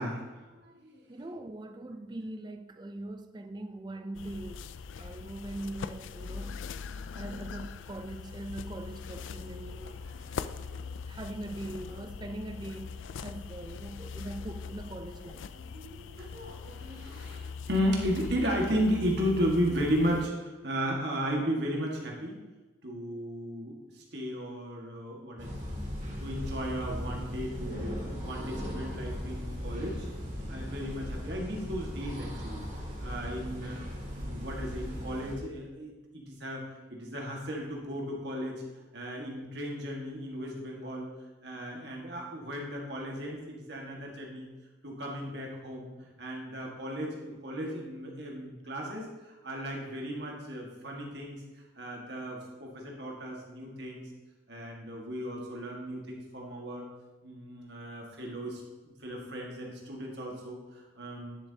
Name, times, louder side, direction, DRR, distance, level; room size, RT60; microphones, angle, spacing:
voice 1, 0.0-1.0 9.8-11.0 11.9-12.0 12.3-12.4 13.2-13.3 14.1-14.2 15.5-22.4 22.8-25.7 26.2-27.8 28.2-30.1 30.5-32.6 33.0-33.8 34.1-36.6 36.9-38.6 38.9-41.1 41.4-44.5 44.8-51.4 51.7-54.1 54.5-56.8 57.2-61.4, equal, 55° right, 1.7 m, -35 dB
voice 2, 1.1-4.7 5.0-6.6 7.1-10.0 11.1-13.0 13.2-15.4, right 1 dB, 20° right, 0.4 m, -41 dB
sound 1, 4.1-20.3, left 5 dB, 75° left, 0.3 m, -41 dB
sound 2, 25.4-35.4, equal, 40° right, 2.1 m, -38 dB
10.0 x 6.8 x 2.8 m
head